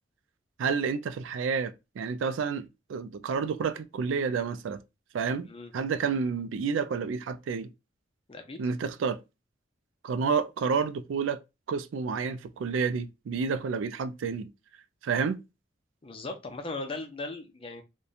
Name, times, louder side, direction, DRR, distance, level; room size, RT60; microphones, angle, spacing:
voice 1, 0.6-4.8 5.1-5.5 5.7-7.7 8.6-9.2 10.0-11.4 11.7-14.5 15.0-15.4, right 5 dB, 85° right, 0.3 m, -29 dB
voice 2, 8.3-8.6 16.0-17.8, left 2 dB, 30° left, 0.5 m, -38 dB
2.7 x 2.1 x 2.4 m
head